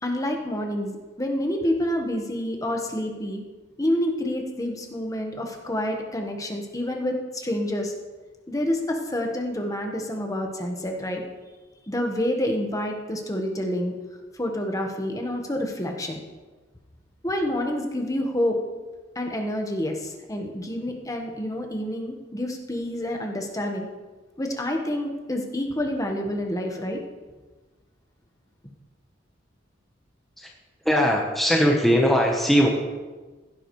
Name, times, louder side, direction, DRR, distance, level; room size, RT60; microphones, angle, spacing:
voice 1, 0.0-3.4 3.8-7.9 8.5-11.2 11.9-13.9 14.3-16.2 17.2-18.6 19.1-23.9 24.4-27.0, left 1 dB, 20° left, 2 dB, 1.3 m, -28 dB
voice 2, 30.8-32.7, equal, ahead, -1 dB, 1.1 m, -20 dB
16.0 x 11.0 x 3.2 m, 1.3 s
head